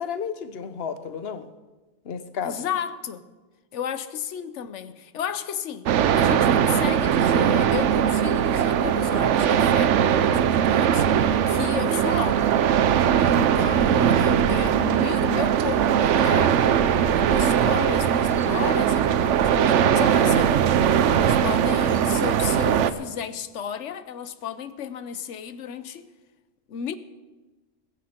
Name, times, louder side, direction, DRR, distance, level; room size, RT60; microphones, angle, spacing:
voice 1, 0.0-1.5 2.1-2.6, left 7 dB, 60° left, 11 dB, 1.1 m, -32 dB
voice 2, 2.4-3.2 3.7-11.1 11.5-12.5 13.2-16.8 17.1-20.5 21.1-26.1 26.7-27.0, left 8 dB, 90° left, 13 dB, 1.1 m, -33 dB
sound 1, 5.9-22.9, right 9 dB, 90° right, 1.0 m, -20 dB
21.0 x 10.0 x 4.4 m, 1.2 s
omnidirectional pair, 1.2 m